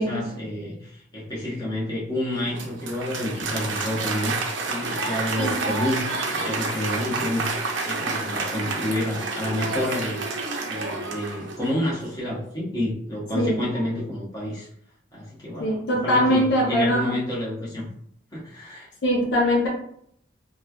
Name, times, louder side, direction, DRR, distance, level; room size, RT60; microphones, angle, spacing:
voice 1, 0.0-4.3 4.7-10.2 10.7-14.7 15.1-17.9 18.3-18.9, left 1 dB, 20° left, -7 dB, 0.9 m, -29 dB
Applause, 2.3-11.9, right 3 dB, 70° right, 0.5 m, -29 dB
voice 2, 5.4-5.7 13.3-13.6 15.6-17.1 19.0-19.7, equal, 60° left, -3 dB, 0.7 m, -22 dB
3.1 x 2.3 x 2.3 m, 0.67 s
head